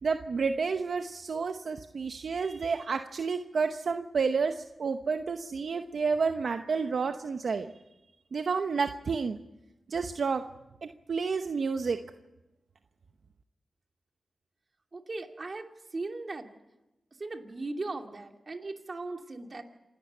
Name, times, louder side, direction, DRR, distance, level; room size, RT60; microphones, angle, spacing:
voice 1, 0.0-7.7 8.3-9.4 9.9-10.4 10.8-12.0, right 5 dB, 70° right, 7 dB, 0.9 m, -30 dB
voice 2, 14.9-16.5 17.2-19.6, right 3 dB, 45° right, 4 dB, 2.5 m, -38 dB
27.5 x 12.5 x 8.8 m, 0.98 s
cardioid pair, 60°, 0 cm